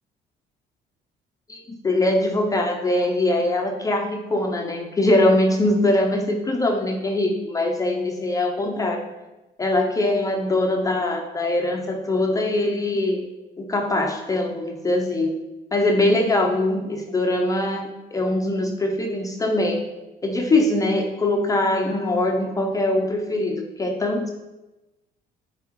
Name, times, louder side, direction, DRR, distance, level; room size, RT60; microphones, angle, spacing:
voice 1, 1.5-9.1 9.6-13.3 13.6-15.4 15.7-19.9 20.2-24.3, left 1 dB, 20° left, 2 dB, 0.6 m, -22 dB
6.9 x 4.8 x 3.1 m, 1.0 s
cardioid pair, 110°, 17 cm